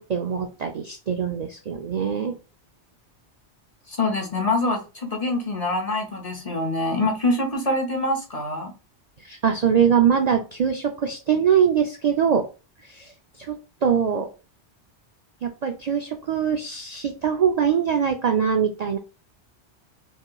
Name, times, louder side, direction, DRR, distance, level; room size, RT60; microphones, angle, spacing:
voice 1, 0.0-2.3 9.2-12.5 12.8-13.1 13.4-14.3 15.4-19.0, right 7 dB, 55° right, 4 dB, 0.4 m, -23 dB
voice 2, 3.9-8.7, left 2 dB, 35° left, 3 dB, 0.9 m, -25 dB
5.4 x 2.9 x 2.2 m, 0.32 s
omnidirectional pair, 1.2 m